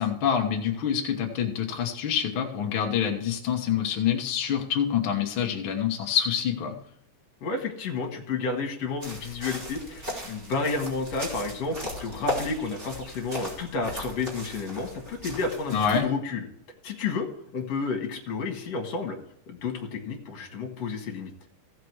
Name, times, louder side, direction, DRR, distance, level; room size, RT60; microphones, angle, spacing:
voice 1, 0.0-6.7 15.7-16.1, left 8 dB, 75° left, 3 dB, 1.1 m, -26 dB
voice 2, 7.4-16.5 16.8-17.3 17.5-19.2 19.5-21.3, left 4 dB, 50° left, 2 dB, 2.6 m, -31 dB
sound 1, 9.0-16.0, equal, 15° right, 3.0 m, -37 dB
16.0 x 6.0 x 4.7 m, 0.69 s
omnidirectional pair, 4.3 m